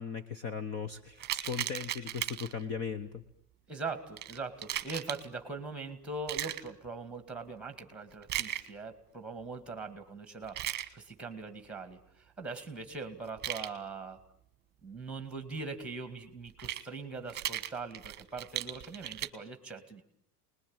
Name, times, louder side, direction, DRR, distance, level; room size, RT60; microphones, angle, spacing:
voice 1, 0.0-3.2, left 6 dB, 30° left, 13 dB, 1.1 m, -38 dB
sound 1, 1.2-2.6 4.2-5.3 6.3-6.7 8.2-8.7 10.4-10.9 13.3-13.7 16.5-16.8 17.3-19.3, right 13 dB, 20° right, 1.5 m, -36 dB
voice 2, 3.7-14.2 14.8-20.0, right 3 dB, ahead, 8 dB, 2.2 m, -41 dB
28.5 x 21.0 x 9.0 m, 0.72 s
supercardioid pair, 170°, 46 cm